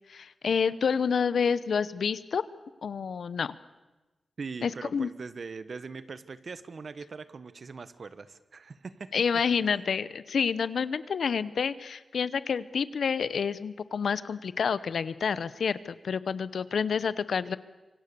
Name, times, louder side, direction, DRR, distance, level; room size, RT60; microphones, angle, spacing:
voice 1, 0.1-2.4 2.8-3.5 4.6-5.1 9.1-17.6, left 6 dB, 80° left, 16 dB, 0.8 m, -28 dB
voice 2, 4.4-9.1 9.6-9.8, right 4 dB, 55° right, 14 dB, 1.2 m, -41 dB
26.5 x 24.5 x 6.9 m, 1.1 s
wide cardioid pair, 115°, 0 cm